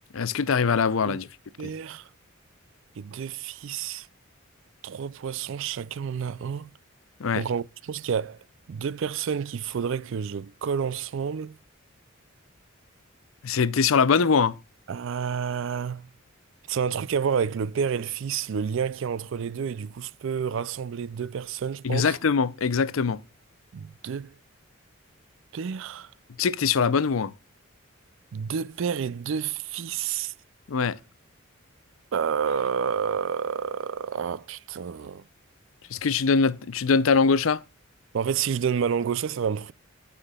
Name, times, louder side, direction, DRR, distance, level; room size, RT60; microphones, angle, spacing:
voice 1, 0.1-1.3 7.2-7.4 13.4-14.5 21.8-23.2 26.4-27.3 30.7-31.0 35.9-37.6, left 5 dB, 70° left, 0.5 m, -22 dB
voice 2, 1.6-2.1 3.0-4.1 4.8-6.7 7.4-8.4 8.7-11.6 14.9-16.1 16.7-22.2 23.7-24.3 25.5-26.1 28.3-30.3 32.1-35.2 38.1-39.7, right 7 dB, 60° right, 0.4 m, -29 dB
14.5 x 5.7 x 2.3 m
head